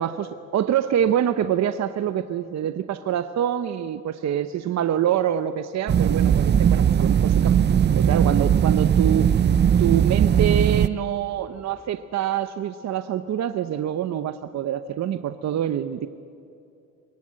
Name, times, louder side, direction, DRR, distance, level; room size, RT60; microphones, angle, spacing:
voice 1, 0.0-7.6 7.9-9.3 9.8-16.1, right 10 dB, 60° right, 11 dB, 0.8 m, -25 dB
sound 1, 5.9-10.9, right 8 dB, 35° right, 0.5 m, -19 dB
23.5 x 22.0 x 7.6 m, 2.6 s
cardioid pair, 90°, 30 cm